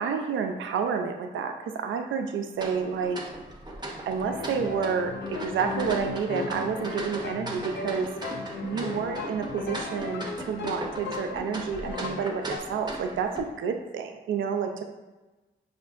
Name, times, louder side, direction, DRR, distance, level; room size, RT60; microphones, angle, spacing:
voice 1, 0.0-3.2 4.1-8.1 8.6-14.8, right 6 dB, 80° right, 5 dB, 0.4 m, -29 dB
sound 1, 2.6-13.4, right 1 dB, 20° right, 0.7 m, -38 dB
sound 2, 4.2-12.6, left 4 dB, 60° left, 0.5 m, -36 dB
5.0 x 2.5 x 2.4 m, 1.1 s
supercardioid pair, 40°, 20 cm